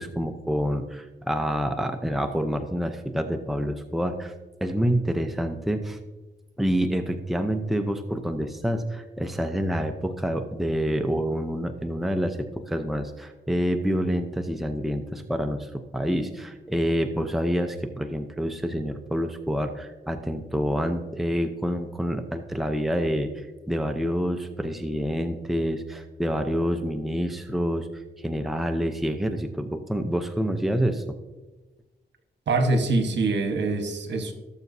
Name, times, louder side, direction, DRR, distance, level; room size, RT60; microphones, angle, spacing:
voice 1, 0.0-4.3 4.6-6.0 6.6-12.4 12.7-27.9 28.2-31.0, equal, ahead, 5 dB, 0.7 m, -27 dB
voice 2, 32.5-34.3, right 3 dB, 70° right, 6 dB, 1.3 m, -24 dB
17.0 x 7.1 x 2.7 m, 1.2 s
cardioid pair, 95°, 19 cm